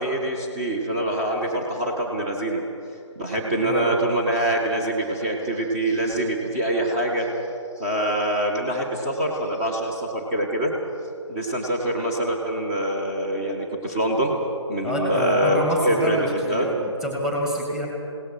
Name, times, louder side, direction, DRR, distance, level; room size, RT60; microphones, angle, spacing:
voice 1, 0.0-2.6 3.2-7.3 7.8-10.7 11.3-14.3 14.7-16.7, right 1 dB, 20° right, -1 dB, 2.0 m, -24 dB
voice 2, 3.6-3.9 14.8-16.7 17.0-17.9, equal, 5° right, -2 dB, 2.2 m, -26 dB
28.5 x 18.0 x 6.1 m, 2.5 s
figure-of-eight pair, 150°, 16 cm